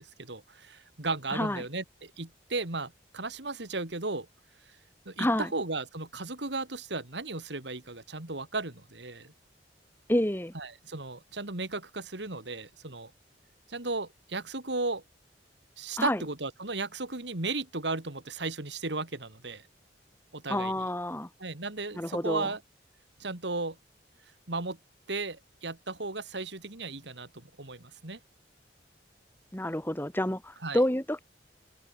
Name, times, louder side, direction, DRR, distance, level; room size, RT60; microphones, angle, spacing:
voice 1, 0.0-4.3 5.0-9.3 10.5-13.1 13.7-15.0 15.8-19.6 20.3-20.7 21.4-22.6 23.2-23.8 24.5-24.8 25.1-28.2 30.6-30.8, right 3 dB, 75° right, 2.9 m, -35 dB
voice 2, 1.3-1.6 5.2-5.5 10.1-10.5 16.0-16.2 20.5-21.3 21.9-22.5 29.5-31.2, left 1 dB, 10° left, 2.3 m, -28 dB
head